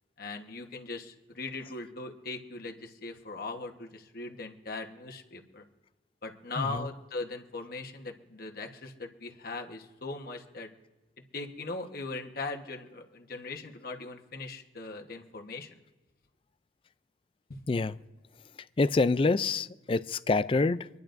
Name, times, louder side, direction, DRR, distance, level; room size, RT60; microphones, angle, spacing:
voice 1, 0.2-5.6 6.2-10.7 11.3-15.8, left 3 dB, 50° left, 1.2 m, -39 dB
voice 2, 6.6-6.9 17.7-18.0 18.8-20.9, left 3 dB, 30° left, 0.3 m, -26 dB
26.0 x 10.5 x 2.6 m
head